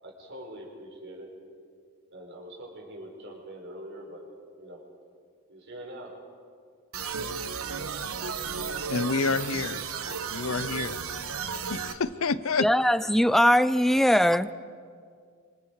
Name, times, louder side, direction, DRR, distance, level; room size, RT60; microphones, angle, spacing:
voice 1, 0.0-1.3 2.1-4.3 4.5-4.8 5.5-6.2, right 1 dB, 60° right, 0 dB, 5.1 m, -43 dB
sound 1, 6.9-11.9, right 6 dB, 85° right, 1.2 m, -33 dB
voice 2, 8.9-9.8 10.1-11.0 11.7-12.7, left 4 dB, 75° left, 15 dB, 0.8 m, -28 dB
voice 3, 12.6-14.5, equal, ahead, 15 dB, 0.5 m, -21 dB
27.5 x 25.5 x 4.9 m, 2.2 s
head